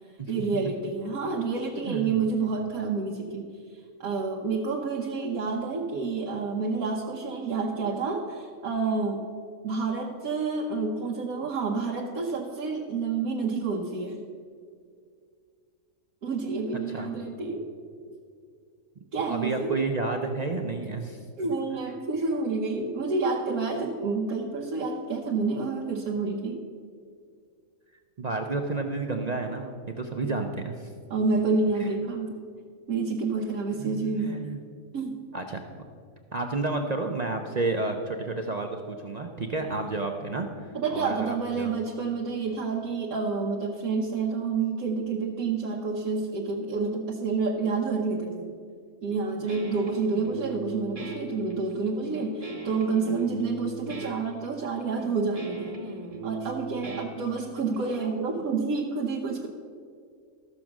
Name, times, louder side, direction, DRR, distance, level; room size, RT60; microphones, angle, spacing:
voice 1, 0.3-3.5 4.0-9.2 9.6-14.2 16.2-17.7 19.1-19.7 21.4-26.6 31.1-32.3 32.9-34.4 34.9-35.2 40.7-48.5 49.0-55.8 56.2-59.5, right 4 dB, 90° right, -1 dB, 1.3 m, -29 dB
voice 2, 1.8-2.2 16.9-17.2 19.3-21.2 28.2-30.9 31.8-31.9 33.8-34.6 35.3-35.6 36.3-41.7, right 3 dB, 45° right, 4 dB, 0.5 m, -31 dB
Guitar, 49.1-57.8, right 3 dB, 30° right, 0.9 m, -39 dB
14.0 x 6.3 x 6.0 m, 2.2 s
omnidirectional pair, 1.4 m